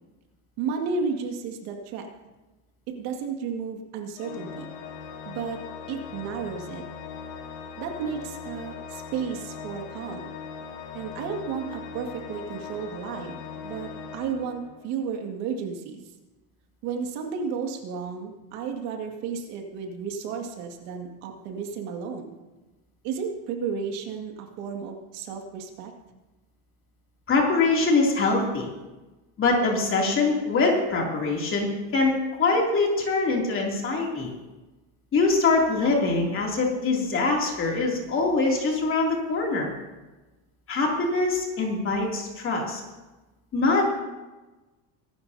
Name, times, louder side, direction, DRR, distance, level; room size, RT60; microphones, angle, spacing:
voice 1, 0.6-2.1 2.9-4.7 5.3-5.6 5.9-6.8 7.8-10.3 10.9-13.4 13.6-16.0 16.8-22.3 23.0-25.9, right 6 dB, 70° right, 3 dB, 2.2 m, -33 dB
Organ, 4.2-15.0, left 6 dB, 65° left, 2.5 m, -40 dB
voice 2, 27.3-28.7 29.4-34.3 35.1-39.7 40.7-42.8 43.5-43.9, left 3 dB, 25° left, -1 dB, 2.7 m, -23 dB
23.0 x 12.0 x 2.8 m, 1.1 s
cardioid pair, 165°, 46 cm